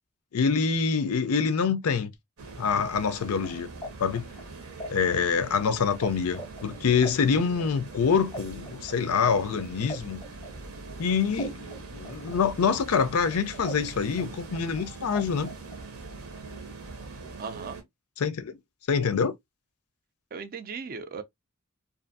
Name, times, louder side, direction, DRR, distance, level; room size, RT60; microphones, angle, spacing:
voice 1, 0.3-2.1 2.6-3.7 4.0-4.3 4.9-10.2 11.0-11.7 11.9-15.5 18.2-18.6 18.9-19.3, left 6 dB, 85° left, 0.5 m, -25 dB
sound 1, 2.4-17.8, right 3 dB, 75° right, 0.8 m, -43 dB
sound 2, 3.1-6.1 6.3-11.0 11.4-13.9 14.2-15.8, right 1 dB, 15° left, 0.7 m, -40 dB
voice 2, 17.4-17.8 20.3-21.2, right 5 dB, 45° right, 0.4 m, -37 dB
2.5 x 2.5 x 2.5 m
head